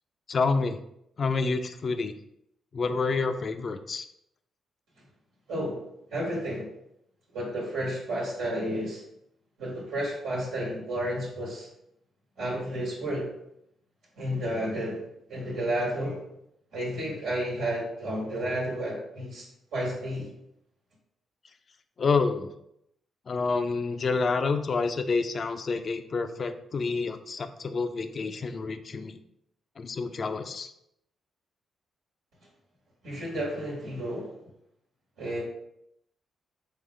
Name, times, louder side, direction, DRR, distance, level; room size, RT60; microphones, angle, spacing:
voice 1, 0.3-0.8 1.2-2.1 2.7-4.1 22.0-22.5 23.3-29.2 29.8-30.7, left 4 dB, 50° left, 9 dB, 0.4 m, -28 dB
voice 2, 5.5-5.8 6.1-6.7 7.3-9.0 9.6-11.7 12.4-13.3 14.2-16.2 16.7-19.5 19.7-20.3 33.0-34.3 35.2-35.4, right 1 dB, 85° right, -5 dB, 1.3 m, -31 dB
3.8 x 3.2 x 3.2 m, 0.78 s
supercardioid pair, 55°, 0 cm